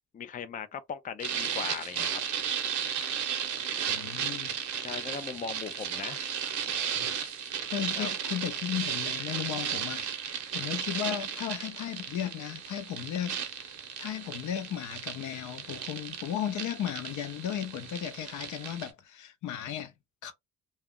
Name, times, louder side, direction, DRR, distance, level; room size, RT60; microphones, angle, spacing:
voice 1, 0.1-2.2 4.8-6.2 8.0-8.1, left 7 dB, 30° left, 0.4 m, -38 dB
sound 1, 1.2-18.9, right 8 dB, 75° right, 0.8 m, -35 dB
voice 2, 3.9-4.6 6.9-7.1 7.7-13.7 14.0-19.9 20.2-20.3, left 10 dB, 75° left, 0.7 m, -35 dB
2.3 x 2.1 x 3.6 m
cardioid pair, 90°, 30 cm